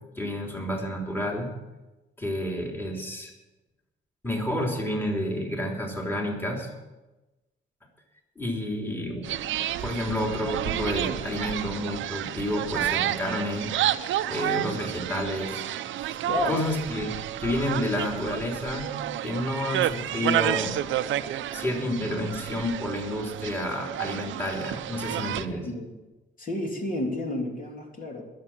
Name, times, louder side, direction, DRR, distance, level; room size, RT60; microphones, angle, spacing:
voice 1, 0.1-1.5 2.2-3.3 4.2-6.7 8.4-9.3 9.8-13.7 14.2-15.6 16.0-16.1 16.4-17.1 17.4-18.9 19.2-20.8 21.5-25.7, left 1 dB, 10° left, 0 dB, 3.4 m, -30 dB
sound 1, 9.2-25.4, right 12 dB, 75° right, 0.7 m, -30 dB
voice 2, 16.3-16.6 25.2-25.9 26.4-28.2, left 2 dB, 45° left, 0 dB, 3.4 m, -31 dB
21.0 x 7.6 x 7.3 m, 1.1 s
cardioid pair, 90°, 20 cm